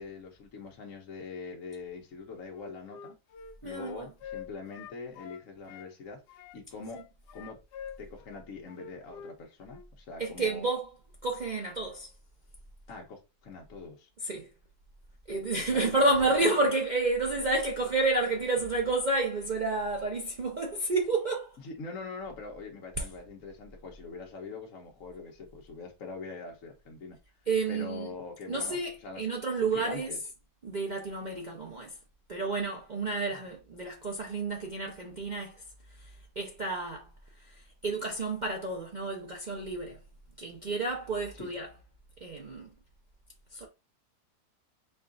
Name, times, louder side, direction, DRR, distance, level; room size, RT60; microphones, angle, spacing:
voice 1, 0.0-3.2 3.6-6.2 6.5-7.0 7.3-7.6 8.0-10.7 12.9-14.1 15.6-16.5 21.6-27.2 27.7-29.3 29.6-30.2 33.3-33.4 41.4-41.5, left 4 dB, 55° left, 1.1 m, -43 dB
Wind instrument woodwind instrument, 2.5-5.9 6.3-9.4 9.6-9.9, left 8 dB, 80° left, 1.2 m, -47 dB
voice 2, 3.6-4.1 10.2-10.9 11.2-12.1 14.2-14.5 15.3-21.6 23.0-23.1 27.5-28.1 28.5-30.1 30.6-32.0 32.3-35.6 36.4-37.1 37.4-40.0 40.4-41.7 42.2-42.7 43.5-43.7, right 3 dB, 80° right, 0.4 m, -30 dB
4.5 x 2.4 x 3.7 m
omnidirectional pair, 1.8 m